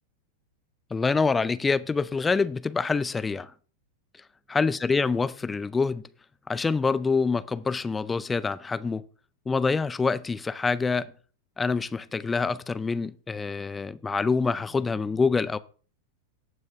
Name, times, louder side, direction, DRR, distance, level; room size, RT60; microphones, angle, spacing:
voice 1, 0.9-3.5 4.5-6.0 6.5-9.0 9.5-11.1 11.6-15.6, left 4 dB, 15° left, 0.5 m, -26 dB
17.5 x 6.3 x 3.3 m
figure-of-eight pair, 90°, 0 cm